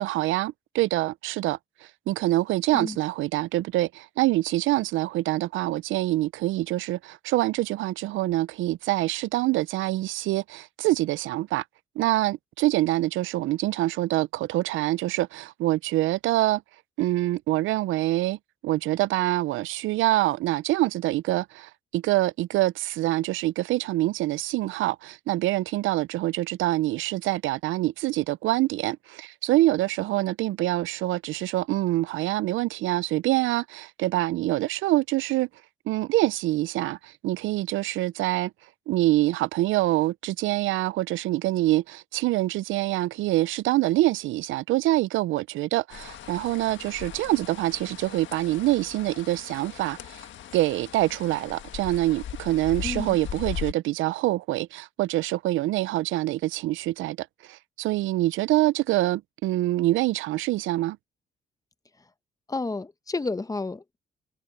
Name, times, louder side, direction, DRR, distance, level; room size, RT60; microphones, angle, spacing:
voice 1, 0.0-1.6 2.1-11.6 12.0-16.6 17.0-18.4 18.6-35.5 35.9-38.5 38.9-50.2 50.5-61.0, right 16 dB, 80° right, 0.4 m, -25 dB
sound 1, 45.9-53.7, left 10 dB, 70° left, 1.5 m, -39 dB
voice 2, 52.8-53.2 62.5-64.0, left 3 dB, 15° left, 0.8 m, -31 dB
cardioid pair, 90°, 20 cm